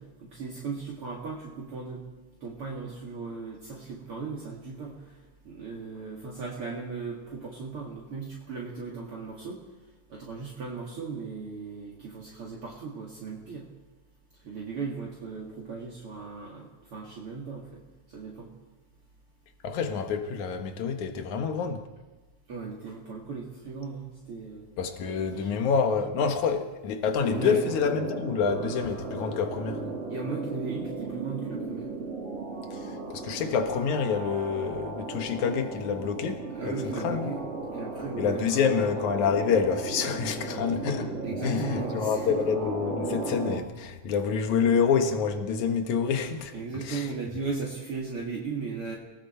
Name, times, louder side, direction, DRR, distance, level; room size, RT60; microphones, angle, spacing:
voice 1, 0.0-2.0 2.4-5.2 5.4-9.6 10.1-13.7 14.4-17.8 18.1-18.5 22.5-24.7 25.3-25.5 27.3-27.6 30.1-31.9 36.5-37.4 37.7-38.9 41.2-42.3 46.5-48.9, right 4 dB, 50° right, 3.0 m, -37 dB
voice 2, 19.6-21.9 24.8-29.8 32.7-37.3 38.2-41.2 41.4-46.5 46.8-47.1, left 6 dB, 80° left, 2.9 m, -27 dB
sound 1, 27.2-43.6, right 2 dB, 25° right, 2.1 m, -36 dB
30.0 x 20.0 x 4.5 m
omnidirectional pair, 3.3 m